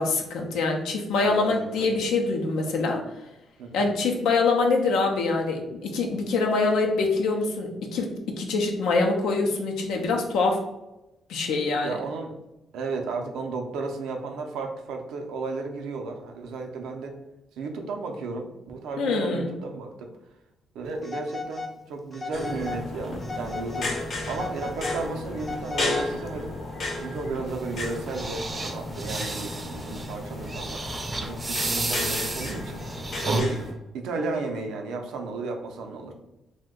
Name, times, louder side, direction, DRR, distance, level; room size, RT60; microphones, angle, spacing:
voice 1, 0.0-3.0 3.7-8.1 8.4-10.6 11.3-11.9 19.0-19.5, left 3 dB, 85° left, 1 dB, 0.5 m, -24 dB
voice 2, 1.2-2.0 3.6-4.0 11.8-12.3 12.7-17.1 17.6-20.1 20.7-23.9 24.3-26.6 27.0-30.8 31.2-32.8 33.2-33.6 33.9-36.1, right 3 dB, 85° right, 3 dB, 0.4 m, -33 dB
Telephone, 21.0-21.7 22.1-22.8 23.2-23.9 24.3-26.3, left 3 dB, 35° left, 0.5 m, -36 dB
sound 1, 22.3-33.7, left 2 dB, 55° left, 0.8 m, -34 dB
sound 2, 27.5-33.4, right 2 dB, 25° right, 0.4 m, -32 dB
2.6 x 2.1 x 3.6 m, 0.96 s
cardioid pair, 90°, 0 cm